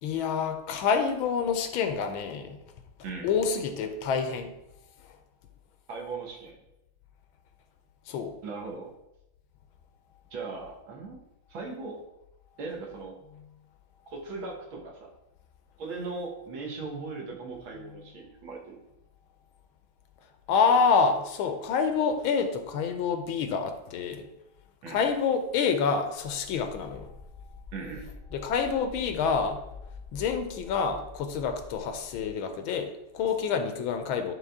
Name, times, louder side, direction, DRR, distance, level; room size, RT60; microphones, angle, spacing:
voice 1, 0.0-2.6 3.2-4.5 8.1-8.4 20.5-24.3 24.9-27.1 28.3-29.7 30.1-34.3, left 5 dB, 75° left, 7 dB, 1.4 m, -27 dB
voice 2, 5.9-6.6 8.4-8.9 10.3-11.2 11.5-12.0 12.6-13.2 14.1-15.1 15.8-18.8 24.8-25.0 27.7-28.1, right 3 dB, 70° right, 0 dB, 2.1 m, -38 dB
sound 1, 26.2-32.3, left 4 dB, 35° left, 1.0 m, -46 dB
11.0 x 3.8 x 3.5 m, 0.89 s
omnidirectional pair, 2.4 m